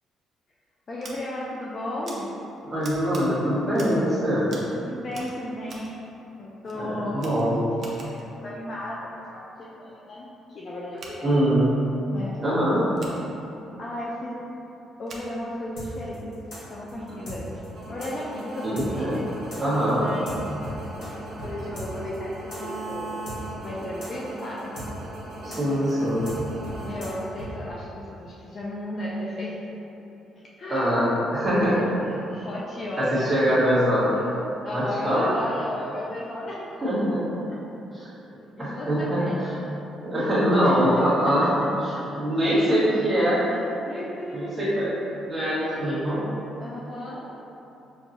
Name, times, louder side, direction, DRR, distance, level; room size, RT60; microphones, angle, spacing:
voice 1, 0.9-2.3 4.8-5.9 6.4-7.6 8.0-11.4 12.1-12.4 13.8-14.4 15.0-16.3 16.7-17.6 17.9-19.3 19.9-20.7 21.3-23.1 23.6-24.7 26.8-29.6 30.6-31.0 31.5-31.8 32.1-33.4 34.6-36.7 38.6-39.6 40.1-41.7 41.9-42.2 43.5-44.7 46.6-47.3, left 1 dB, 35° left, -5 dB, 0.4 m, -34 dB
Scissors, 1.0-1.1 2.0-2.2 2.8-3.2 3.7-4.1 4.5-4.7 5.1-5.9 6.6-6.8 7.2-8.3 10.9-11.1 12.9-13.2 15.0-15.3, right 3 dB, 40° right, 0.5 m, -44 dB
voice 2, 2.6-4.5 6.7-7.5 11.2-11.6 12.4-12.8 18.6-19.2 19.6-20.0 25.4-26.3 30.7-31.8 33.0-34.1 34.7-35.3 36.8-37.2 37.9-38.1 38.6-39.5 40.0-41.5 42.1-43.6 44.3-44.9 45.2-46.3, equal, 10° right, -12 dB, 1.3 m, -23 dB
sound 1, 15.8-21.1 21.4-21.5 21.8-27.5, equal, 60° left, 1.0 m, -39 dB
sound 2, 17.2-27.6, right 2 dB, 70° right, 1.1 m, -39 dB
6.0 x 2.3 x 2.7 m, 3.0 s
cardioid pair, 160°, 0 cm